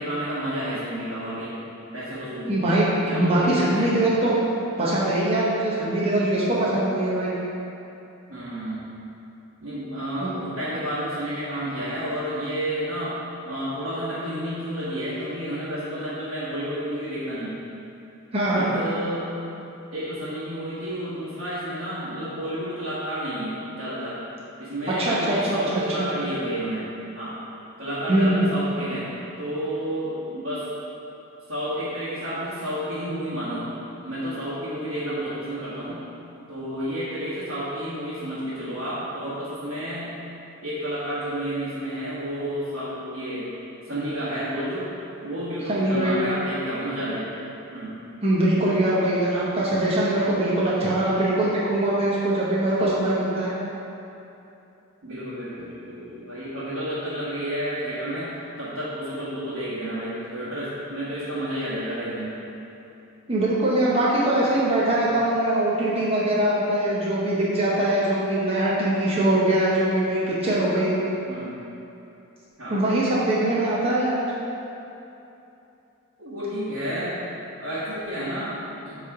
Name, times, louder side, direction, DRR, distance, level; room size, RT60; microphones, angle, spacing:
voice 1, 0.0-1.6 1.9-4.0 8.3-8.9 9.6-13.2 13.4-17.6 18.5-19.3 19.9-24.2 24.6-26.9 27.1-27.4 27.8-29.1 29.4-30.7 31.5-33.7 34.0-36.0 36.5-40.1 40.6-43.5 43.8-44.9 45.2-47.4 47.7-48.0 55.0-58.3 58.6-62.3 65.0-65.1 71.2-71.5 72.6-72.8 76.2-77.2 77.6-78.6 78.8-79.0, equal, 60° right, -12 dB, 1.4 m, -30 dB
voice 2, 2.5-4.4 4.8-7.3 10.2-10.3 18.3-18.7 24.9-25.6 26.0-26.1 28.1-28.4 45.7-46.3 48.2-53.5 63.3-71.0 72.7-74.2, right 1 dB, 30° right, -7 dB, 0.9 m, -22 dB
7.5 x 3.3 x 4.8 m, 2.9 s
head